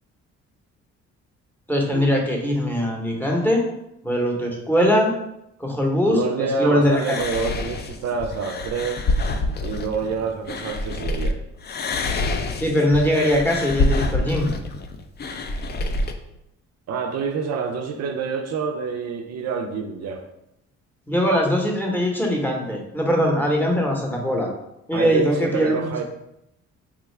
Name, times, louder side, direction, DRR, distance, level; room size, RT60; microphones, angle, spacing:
voice 1, 1.7-3.6 4.0-5.1 5.6-7.2 12.6-14.5 21.1-24.5 24.9-26.0, equal, 5° left, -1 dB, 0.8 m, -21 dB
voice 2, 6.1-9.0 9.6-11.4 16.9-20.2 24.9-26.0, right 5 dB, 60° right, 5 dB, 0.4 m, -27 dB
sound 1, 6.9-11.3 11.6-16.1, left 2 dB, 35° left, 0.4 m, -26 dB
3.6 x 2.3 x 3.1 m, 0.83 s
cardioid pair, 90°, 30 cm